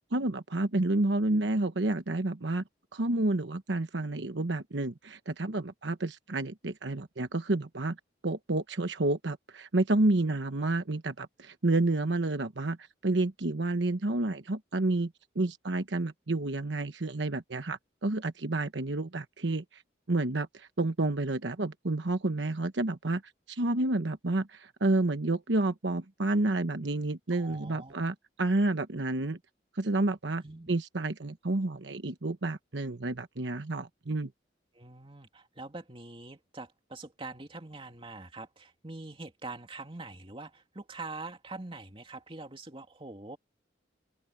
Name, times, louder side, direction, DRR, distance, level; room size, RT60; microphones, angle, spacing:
voice 1, 0.1-2.6 2.9-8.0 8.2-12.8 13.0-19.8 20.1-23.2 23.5-29.4 29.8-34.3, right 2 dB, 80° right, 1.1 m, -30 dB
voice 2, 27.3-28.1 30.4-30.7 34.7-43.4, right 3 dB, 30° right, 2.6 m, -44 dB
open air
head